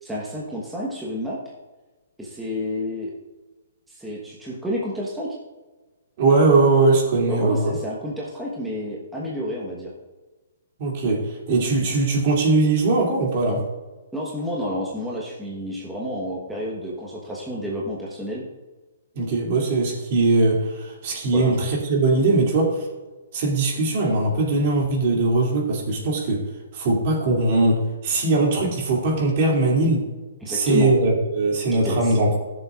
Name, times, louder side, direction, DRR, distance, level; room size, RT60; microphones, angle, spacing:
voice 1, 0.0-1.4 2.2-3.1 3.9-5.4 7.3-9.9 14.1-18.4 21.3-21.6 30.4-30.9 31.8-32.1, left 1 dB, 5° right, -5 dB, 1.2 m, -30 dB
voice 2, 6.2-7.8 10.8-13.6 19.1-22.9 23.3-26.4 26.7-30.0 30.5-32.4, right 2 dB, 45° right, -1 dB, 2.6 m, -20 dB
14.0 x 7.0 x 2.4 m, 1.2 s
hypercardioid pair, 150°, 0 cm